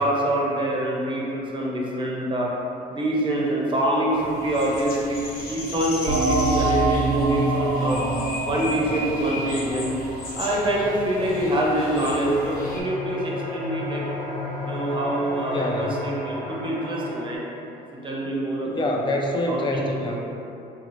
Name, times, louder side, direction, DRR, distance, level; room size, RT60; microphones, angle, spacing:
voice 1, 0.0-2.5 2.9-8.0 8.4-10.0 10.3-14.0 14.6-17.4 18.0-18.8 19.5-20.1, right 1 dB, 30° right, -3 dB, 0.7 m, -25 dB
sound 1, 4.1-12.8, left 1 dB, 60° left, 0.9 m, -36 dB
sound 2, 6.1-11.3, right 2 dB, 70° right, 0.5 m, -25 dB
sound 3, 9.1-17.4, left 1 dB, 45° left, 1.1 m, -34 dB
voice 2, 15.5-16.1 18.6-20.2, left 1 dB, 25° left, 0 dB, 0.5 m, -26 dB
3.7 x 2.6 x 3.1 m, 2.8 s
cardioid pair, 110°, 17 cm